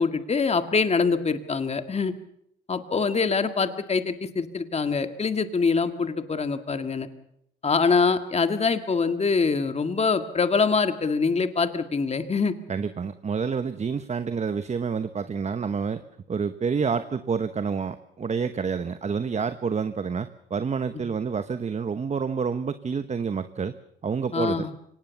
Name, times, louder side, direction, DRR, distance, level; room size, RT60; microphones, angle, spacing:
voice 1, 0.0-2.1 2.7-7.1 7.6-12.6 24.3-24.7, left 4 dB, 30° left, 9 dB, 1.9 m, -24 dB
voice 2, 12.7-16.0 16.3-23.8 24.0-24.7, right 6 dB, 35° right, 11 dB, 1.0 m, -28 dB
24.5 x 18.5 x 7.0 m, 0.74 s
cardioid pair, 90°, 20 cm